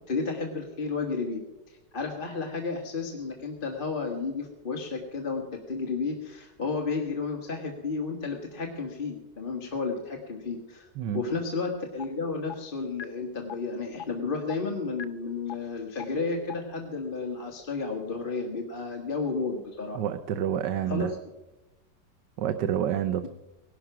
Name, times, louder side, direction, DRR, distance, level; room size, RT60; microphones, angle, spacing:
voice 1, 0.0-1.4 1.7-10.9 11.1-20.0 20.9-21.1, left 4 dB, 30° left, 2 dB, 1.6 m, -32 dB
sound 1, 12.0-12.1 12.5-12.6 13.0-13.1 13.5-13.6 14.0-14.1 14.5-14.6 15.0-15.1 15.5-15.6 16.0-16.1 16.5-16.6, left 9 dB, 70° left, 1.2 m, -36 dB
voice 2, 19.9-21.1 22.4-23.3, right 10 dB, 75° right, 10 dB, 1.3 m, -28 dB
18.5 x 11.5 x 5.9 m, 1.0 s
omnidirectional pair, 1.9 m